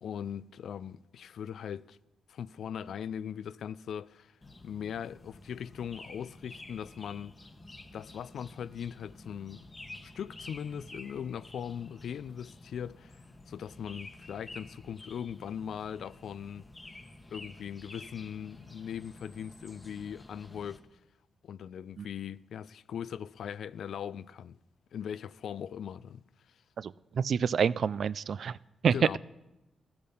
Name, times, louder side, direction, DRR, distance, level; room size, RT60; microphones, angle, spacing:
voice 1, 0.0-2.0 2.3-4.4 4.6-7.4 7.9-9.7 10.0-16.7 17.3-21.0 21.4-24.6 24.9-26.6 28.9-29.2, left 8 dB, 75° left, 0.3 m, -40 dB
sound 1, 4.4-20.8, left 2 dB, 25° left, 1.0 m, -50 dB
voice 2, 26.8-28.6 28.8-28.9, right 7 dB, 65° right, 0.3 m, -28 dB
14.0 x 8.6 x 5.7 m
cardioid pair, 85°, 0 cm